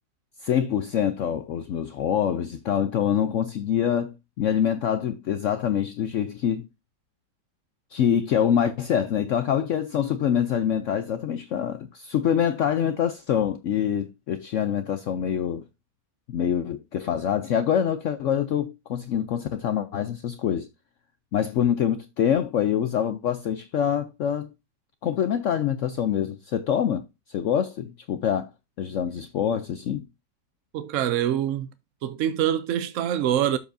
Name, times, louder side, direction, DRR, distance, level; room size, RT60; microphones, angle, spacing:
voice 1, 0.4-6.7 7.9-15.6 16.3-20.7 21.3-24.5 25.0-27.0 27.3-28.5 28.8-30.1, left 9 dB, 70° left, 0.7 m, -25 dB
voice 2, 30.7-31.7 32.0-33.6, right 10 dB, 70° right, 0.7 m, -25 dB
12.0 x 4.7 x 2.6 m
omnidirectional pair, 1.8 m